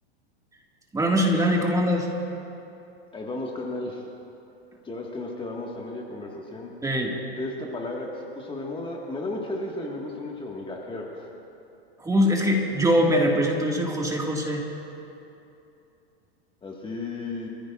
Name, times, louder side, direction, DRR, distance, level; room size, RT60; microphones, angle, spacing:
voice 1, 0.9-2.1 6.8-7.2 12.0-14.6, equal, 10° right, 0 dB, 1.9 m, -22 dB
voice 2, 3.1-4.0 4.8-6.7 7.4-11.3 16.6-17.5, left 2 dB, 15° left, -1 dB, 1.7 m, -34 dB
26.0 x 15.0 x 2.5 m, 2.8 s
hypercardioid pair, 110°, 32 cm